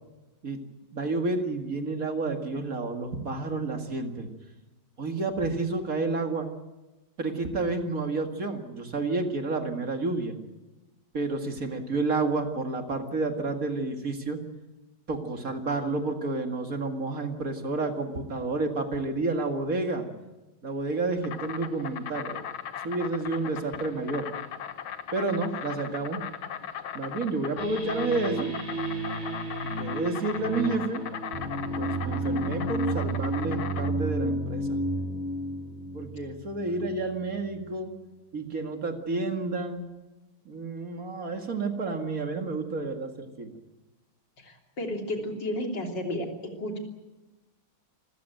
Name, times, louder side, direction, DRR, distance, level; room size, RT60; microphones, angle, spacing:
voice 1, 0.9-4.3 5.0-6.5 7.2-10.3 11.1-14.4 15.1-20.1 20.6-22.4 22.8-24.3 25.1-26.2 26.9-28.5 29.8-31.0 31.8-34.8 35.9-37.9 38.3-39.9 40.5-43.5, right 3 dB, 40° right, 5 dB, 2.4 m, -30 dB
Insect, 20.9-33.9, left 8 dB, 75° left, 2.0 m, -38 dB
sound 1, 27.6-36.9, right 1 dB, 20° right, 8.0 m, -32 dB
voice 2, 44.4-46.3 46.6-46.8, left 1 dB, 55° left, 2 dB, 3.8 m, -32 dB
27.0 x 15.0 x 9.2 m, 1.1 s
omnidirectional pair, 2.3 m